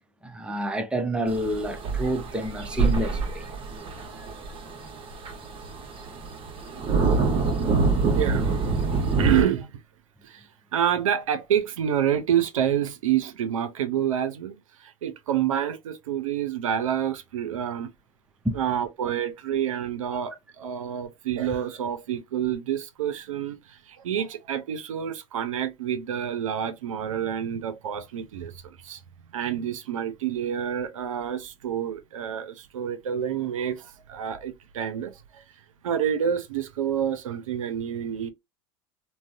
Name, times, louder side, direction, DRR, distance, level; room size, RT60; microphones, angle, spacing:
voice 1, 0.2-3.5 4.2-4.3 18.4-18.6, right 1 dB, 5° right, 0.5 m, -29 dB
sound 1, 1.3-9.4, right 4 dB, 30° right, 0.8 m, -26 dB
voice 2, 8.1-8.5 9.2-9.7 10.2-10.5 10.7-17.9 18.5-29.0 29.3-35.4 35.8-38.3, right 9 dB, 90° right, 0.4 m, -28 dB
2.5 x 2.0 x 2.4 m
hypercardioid pair, 95°, 17 cm